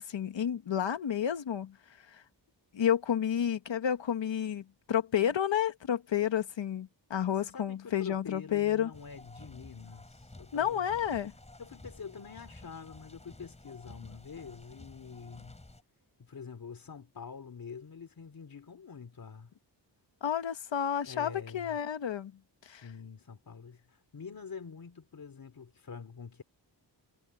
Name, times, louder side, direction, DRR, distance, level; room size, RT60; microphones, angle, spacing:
voice 1, 0.0-1.8 2.7-8.9 10.5-11.3 20.2-22.3 22.7-22.8, left 9 dB, 80° left, 1.6 m, -30 dB
voice 2, 7.3-10.9 11.6-15.6 16.2-19.5 21.0-21.8 22.7-26.4, left 6 dB, 50° left, 3.4 m, -46 dB
sound 1, 8.9-15.8, left 2 dB, 15° left, 3.7 m, -52 dB
wide cardioid pair, 165°, 43 cm